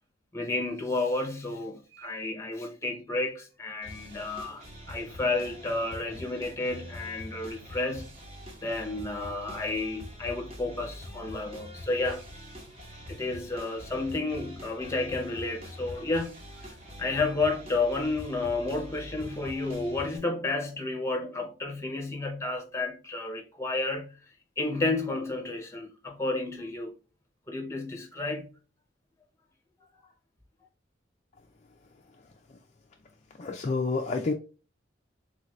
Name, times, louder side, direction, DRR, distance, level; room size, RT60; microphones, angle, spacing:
voice 1, 0.3-8.1 8.6-12.3 13.1-16.3 16.6-24.1 24.6-27.0 27.5-28.5, left 2 dB, 15° left, 0.7 m, -31 dB
sound 1, 3.8-20.2, equal, 35° right, 1.0 m, -44 dB
voice 2, 33.4-34.3, left 3 dB, 35° left, 0.4 m, -29 dB
3.8 x 2.5 x 3.1 m
head